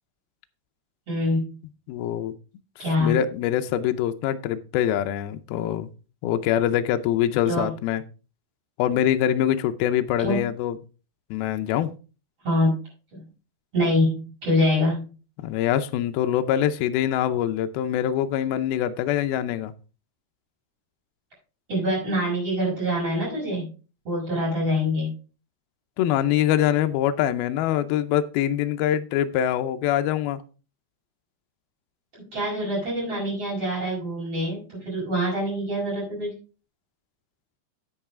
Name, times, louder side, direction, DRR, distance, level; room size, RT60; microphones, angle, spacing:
voice 1, 1.1-1.6 2.8-3.2 7.5-7.7 10.2-10.4 12.4-12.7 13.1-13.2 13.7-15.0 21.7-23.7 24.0-25.1 32.1-36.3, left 1 dB, 30° right, -5 dB, 6.4 m, -25 dB
voice 2, 1.9-2.3 3.0-5.9 6.2-8.0 8.8-10.8 11.3-11.9 15.4-19.7 26.0-30.4, left 11 dB, 85° left, 9 dB, 2.1 m, -24 dB
9.6 x 8.8 x 3.6 m, 0.34 s
omnidirectional pair, 5.3 m